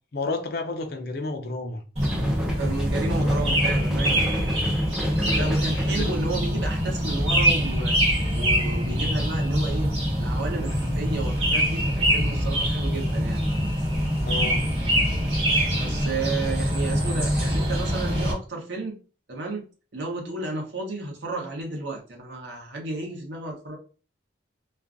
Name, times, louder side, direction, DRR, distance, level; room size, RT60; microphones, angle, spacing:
voice 1, 0.1-1.8 3.1-3.3 5.2-6.1 6.5-6.6 14.2-14.6, left 3 dB, 55° left, 0.4 m, -32 dB
sound 1, 2.0-7.4, equal, 5° right, 0.4 m, -34 dB
sound 2, 2.0-18.3, equal, 35° right, 1.1 m, -24 dB
voice 2, 2.6-4.2 5.4-9.9 10.1-13.4 15.8-19.0 19.3-19.6 19.9-23.8, right 3 dB, 70° right, 0.8 m, -33 dB
2.4 x 2.2 x 2.4 m
head